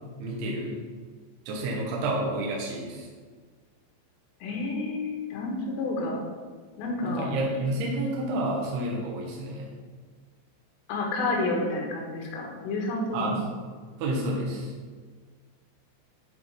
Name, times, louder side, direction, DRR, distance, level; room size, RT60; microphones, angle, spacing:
voice 1, 0.2-0.8 1.5-3.1 7.0-9.7 13.1-13.5 14.0-14.7, right 1 dB, 75° right, -2 dB, 2.7 m, -30 dB
voice 2, 4.4-6.2 6.8-7.4 10.9-13.5, left 2 dB, 85° left, 0 dB, 3.7 m, -30 dB
9.3 x 3.7 x 4.8 m, 1.5 s
omnidirectional pair, 5.6 m